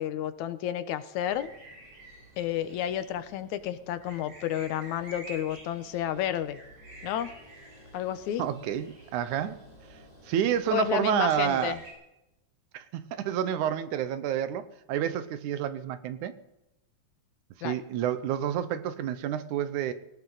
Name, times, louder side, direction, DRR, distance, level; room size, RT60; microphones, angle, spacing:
voice 1, 0.0-1.5 2.4-6.6 7.0-7.3 7.9-8.5 10.7-11.8 17.6-17.7, left 11 dB, 80° left, 11 dB, 2.2 m, -31 dB
sound 1, 1.2-11.9, right 1 dB, 65° right, 6.6 m, -49 dB
voice 2, 8.4-9.6 9.9-10.0 10.2-11.8 12.7-14.6 14.9-16.3 17.6-19.9, right 10 dB, 85° right, 11 dB, 2.4 m, -29 dB
19.5 x 18.0 x 4.0 m, 0.91 s
omnidirectional pair, 3.4 m